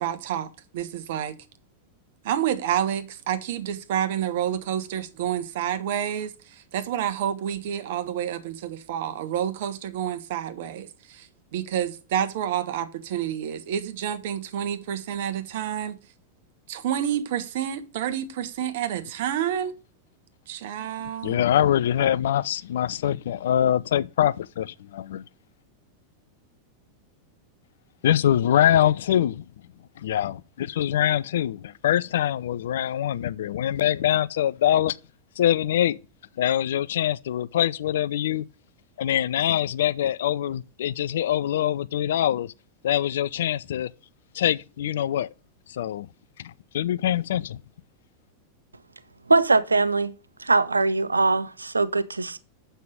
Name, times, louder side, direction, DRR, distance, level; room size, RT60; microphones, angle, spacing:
voice 1, 0.0-1.3 2.2-16.0 16.7-19.7 20.5-21.4, right 10 dB, 55° right, 1.0 m, -29 dB
voice 2, 21.2-25.2 28.0-29.4 30.0-35.0 35.4-36.0 36.4-38.4 39.0-42.5 42.8-43.9 44.3-45.3 45.7-46.1 46.4-47.6, left 11 dB, 60° left, 0.4 m, -24 dB
voice 3, 49.3-50.1 50.4-52.4, right 3 dB, 80° right, 0.5 m, -21 dB
7.5 x 5.6 x 6.3 m
figure-of-eight pair, 90°, 0 cm